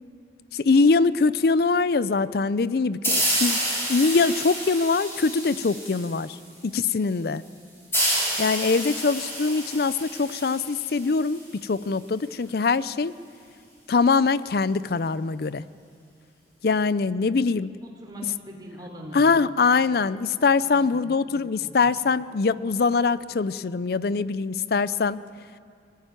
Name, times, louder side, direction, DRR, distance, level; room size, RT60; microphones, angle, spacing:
voice 1, 0.5-6.4 6.6-7.4 8.4-13.1 13.9-15.6 16.6-17.8 19.1-25.2, left 4 dB, 55° left, 17 dB, 0.5 m, -23 dB
sound 1, 3.0-6.4 7.9-11.4, equal, 15° left, 5.2 m, -28 dB
voice 2, 17.8-19.3 20.6-21.3 21.6-21.7, right 1 dB, 25° right, 0 dB, 3.4 m, -41 dB
20.5 x 15.0 x 9.1 m, 2.2 s
head